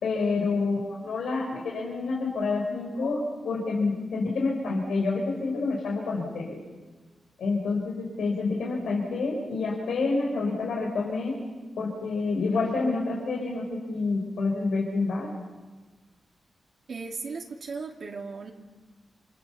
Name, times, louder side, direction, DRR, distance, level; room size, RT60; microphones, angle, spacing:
voice 1, 0.0-3.2 3.4-6.6 7.4-11.4 11.8-15.3, left 3 dB, 90° left, -1 dB, 4.6 m, -28 dB
voice 2, 16.9-18.5, right 4 dB, 65° right, 0 dB, 2.6 m, -36 dB
28.0 x 26.5 x 7.0 m, 1.3 s
wide cardioid pair, 105°, 0 cm